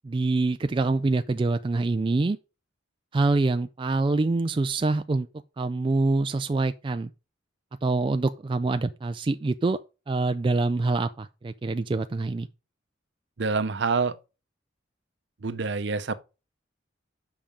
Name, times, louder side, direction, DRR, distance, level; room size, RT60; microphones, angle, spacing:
voice 1, 0.0-2.4 3.1-5.3 5.6-7.1 7.8-9.8 10.1-12.5, right 3 dB, 25° right, 0.3 m, -25 dB
voice 2, 13.4-14.2 15.4-16.1, right 4 dB, 60° right, 0.7 m, -26 dB
7.3 x 5.9 x 5.0 m
head